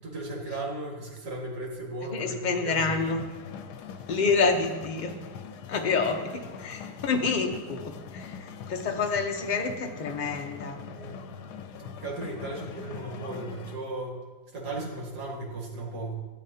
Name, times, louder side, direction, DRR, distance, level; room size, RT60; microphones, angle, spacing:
voice 1, 0.0-3.0 10.9-11.2 11.8-14.2 14.5-16.1, right 2 dB, 85° right, -3 dB, 2.4 m, -36 dB
voice 2, 2.1-3.3 4.1-5.2 5.7-10.8, left 4 dB, 40° left, 3 dB, 0.7 m, -28 dB
sound 1, 2.7-13.8, left 6 dB, 90° left, 1.2 m, -42 dB
14.0 x 8.5 x 2.8 m, 1.2 s
omnidirectional pair, 1.7 m